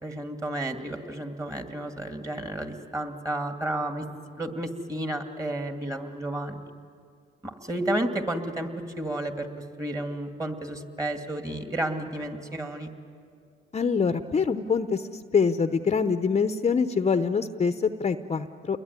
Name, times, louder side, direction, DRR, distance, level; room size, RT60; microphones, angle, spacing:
voice 1, 0.0-4.0 4.4-6.7 7.4-8.7 9.0-9.5 9.8-12.9, right 1 dB, 15° right, 5 dB, 2.5 m, -31 dB
voice 2, 13.7-18.8, left 5 dB, 35° left, 10 dB, 0.8 m, -25 dB
28.5 x 21.5 x 9.7 m, 2.3 s
cardioid pair, 90°, 20 cm